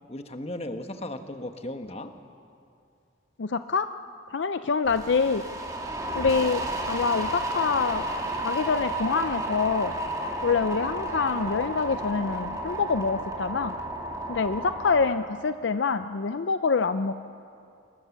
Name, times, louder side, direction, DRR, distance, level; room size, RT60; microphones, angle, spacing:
voice 1, 0.1-2.1, left 1 dB, 30° left, 7 dB, 1.2 m, -36 dB
voice 2, 3.4-3.9 4.3-5.5 6.1-8.0 8.4-9.9 10.4-13.7 14.3-17.1, left 5 dB, 65° left, 11 dB, 0.5 m, -26 dB
sound 1, 4.9-15.1, right 1 dB, 20° right, 2.4 m, -32 dB
26.0 x 21.5 x 7.1 m, 2.5 s
head